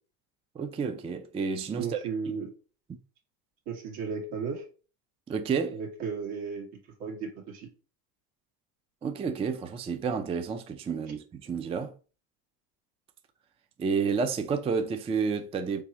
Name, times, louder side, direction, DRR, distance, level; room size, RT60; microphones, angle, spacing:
voice 1, 0.6-2.0 5.3-5.8 9.0-11.9 13.8-15.8, right 5 dB, 15° right, 0.3 m, -30 dB
voice 2, 1.8-2.5 3.7-4.6 5.7-6.7 7.0-7.7 11.1-11.2, right 5 dB, 80° right, 1.9 m, -35 dB
4.1 x 3.5 x 2.9 m
supercardioid pair, 115°, 41 cm